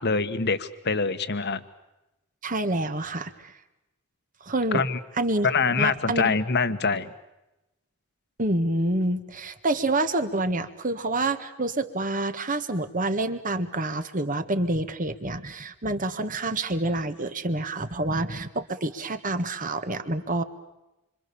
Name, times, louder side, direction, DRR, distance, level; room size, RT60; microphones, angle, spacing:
voice 1, 0.0-1.6 4.7-5.0 5.4-7.1, left 4 dB, 50° left, 11 dB, 1.5 m, -24 dB
voice 2, 2.4-3.5 4.4-4.8 5.2-5.5 5.8-6.3 8.4-20.4, right 2 dB, 35° right, 9 dB, 1.8 m, -27 dB
27.0 x 26.5 x 7.1 m, 0.97 s
head